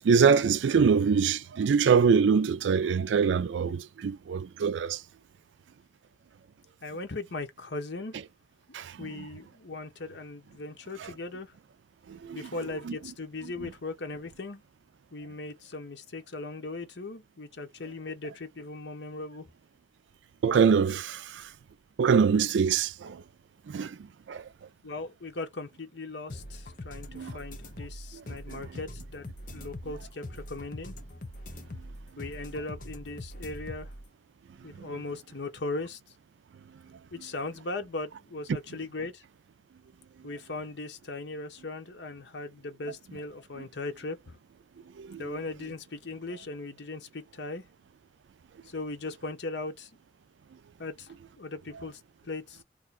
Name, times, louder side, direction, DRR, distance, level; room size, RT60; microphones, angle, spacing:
voice 1, 0.0-5.0 8.7-9.2 11.0-11.1 12.1-12.5 12.9-13.0 13.4-13.5 20.4-21.5 22.0-23.2 23.7-24.0 24.3-24.5 27.1-27.4 28.5-28.6 34.8-34.9 45.0-45.3, right 6 dB, 90° right, 0.4 m, -24 dB
voice 2, 6.8-8.1 9.0-11.5 12.3-14.6 15.1-19.5 24.8-31.0 32.2-33.9 34.6-36.0 37.1-39.2 40.2-44.4 45.2-47.6 48.6-49.9 50.8-52.6, left 3 dB, 80° left, 0.9 m, -38 dB
sound 1, 26.3-34.0, left 1 dB, 45° left, 0.7 m, -42 dB
2.8 x 2.3 x 4.1 m
head